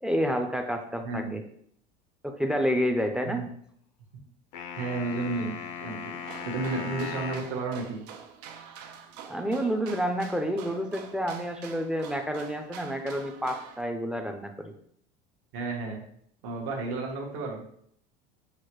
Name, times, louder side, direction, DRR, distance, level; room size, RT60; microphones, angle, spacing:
voice 1, 0.0-1.4 2.2-3.4 9.3-14.7, equal, 5° right, 5 dB, 0.4 m, -29 dB
voice 2, 1.0-1.3 3.2-3.5 4.8-5.5 5.8-8.0 15.5-16.0 16.4-17.6, right 3 dB, 65° right, -1 dB, 1.1 m, -32 dB
sound 1, 4.5-7.5, left 7 dB, 85° left, 0.7 m, -38 dB
sound 2, 6.2-13.8, right 7 dB, 85° right, 0.6 m, -46 dB
6.4 x 2.2 x 3.0 m, 0.67 s
supercardioid pair, 110°, 21 cm